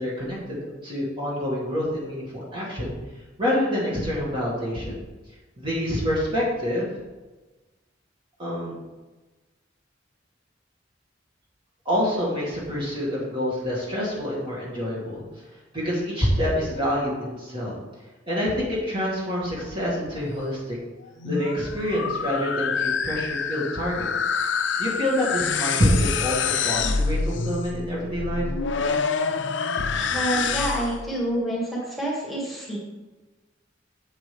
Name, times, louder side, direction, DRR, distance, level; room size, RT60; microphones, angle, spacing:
voice 1, 0.0-3.0 3.4-4.9 5.6-7.0 8.4-8.8 11.9-15.2 15.7-17.7 18.3-20.8 21.2-24.1 24.8-28.5, equal, 25° right, -6 dB, 2.3 m, -26 dB
sound 1, 21.0-31.1, left 5 dB, 75° left, 0.6 m, -27 dB
voice 2, 30.1-32.8, right 1 dB, ahead, -6 dB, 2.3 m, -27 dB
8.2 x 8.1 x 3.5 m, 1.2 s
head